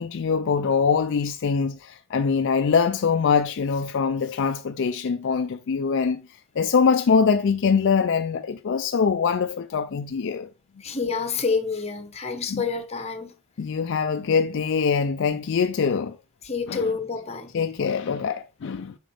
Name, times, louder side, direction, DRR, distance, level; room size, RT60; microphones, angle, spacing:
voice 1, 0.0-10.5 12.5-12.6 13.6-16.2 16.7-16.9 17.5-19.0, left 5 dB, 55° left, 0.4 m, -23 dB
voice 2, 10.8-13.3 16.4-17.5, left 5 dB, 30° left, 1.0 m, -28 dB
7.7 x 5.2 x 3.3 m
head